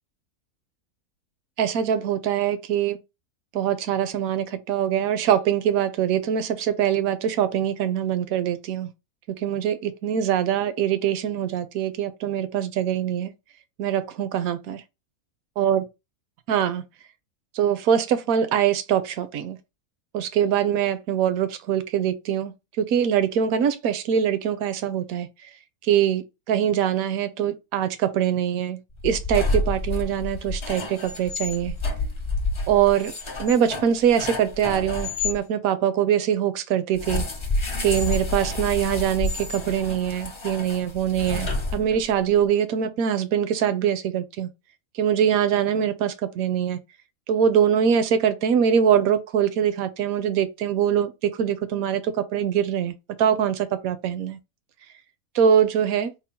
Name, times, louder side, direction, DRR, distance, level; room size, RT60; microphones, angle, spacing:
voice 1, 1.6-3.0 3.5-8.9 9.4-13.3 13.8-14.8 15.6-15.8 16.5-16.8 17.5-19.6 20.1-25.5 25.8-31.7 32.7-33.1 33.4-37.2 37.8-44.5 45.0-46.8 47.3-54.4 55.3-56.1, right 9 dB, 75° right, 1.0 m, -23 dB
sound 1, 28.9-35.4 36.9-42.2, left 2 dB, 40° left, 0.4 m, -29 dB
3.7 x 2.0 x 4.1 m
omnidirectional pair, 1.6 m